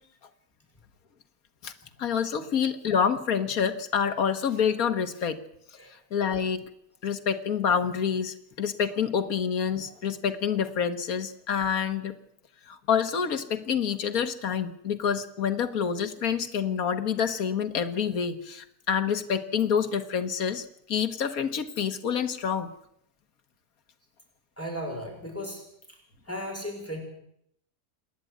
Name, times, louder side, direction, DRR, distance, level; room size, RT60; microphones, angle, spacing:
voice 1, 2.0-5.4 6.1-6.6 7.0-12.1 12.7-22.7, left 7 dB, 70° left, 8 dB, 2.0 m, -27 dB
voice 2, 24.6-25.7 26.3-27.0, equal, 10° left, 1 dB, 5.8 m, -35 dB
28.0 x 10.5 x 9.5 m, 0.75 s
omnidirectional pair, 1.6 m